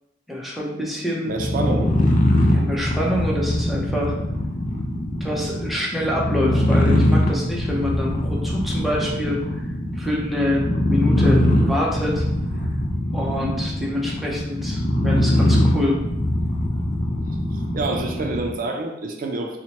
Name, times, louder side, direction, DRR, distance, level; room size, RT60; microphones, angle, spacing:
voice 1, 0.3-1.3 2.5-4.2 5.2-9.7 9.9-12.3 13.1-16.0, left 1 dB, ahead, -3 dB, 0.6 m, -26 dB
voice 2, 1.2-1.9 17.5-19.6, right 2 dB, 45° right, 2 dB, 0.4 m, -27 dB
sound 1, 1.3-18.6, left 1 dB, 45° left, 0.5 m, -21 dB
4.3 x 2.1 x 2.8 m, 0.89 s
head